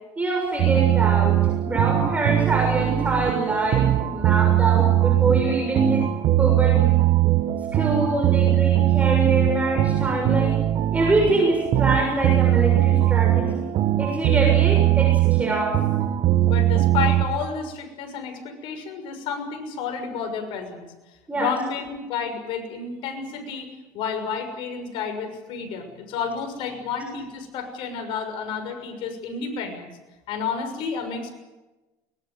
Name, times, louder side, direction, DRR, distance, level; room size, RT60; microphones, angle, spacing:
voice 1, 0.2-1.4 1.6-6.1 6.4-7.0 7.7-10.6 10.9-13.7 14.0-15.8 21.3-21.5, right 2 dB, 15° right, 0 dB, 6.8 m, -24 dB
sound 1, 0.6-17.3, right 14 dB, 55° right, 1.5 m, -20 dB
voice 2, 16.4-20.9 21.3-23.7 23.9-29.9 30.3-31.3, left 6 dB, 60° left, 6 dB, 6.4 m, -30 dB
22.5 x 20.0 x 9.4 m, 1.1 s
supercardioid pair, 105°, 9 cm